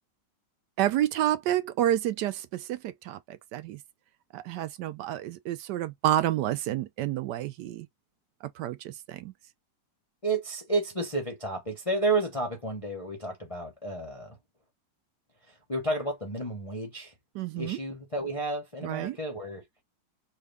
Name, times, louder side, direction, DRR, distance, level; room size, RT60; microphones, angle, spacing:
voice 1, 0.8-2.8 3.1-3.2 3.5-3.8 4.3-7.9 8.6-9.3 17.4-17.8 18.8-19.2, right 12 dB, 75° right, 1.1 m, -29 dB
voice 2, 10.2-14.4 15.5-17.1 17.6-19.6, right 2 dB, 35° left, 0.5 m, -31 dB
3.5 x 2.5 x 3.3 m
omnidirectional pair, 1.9 m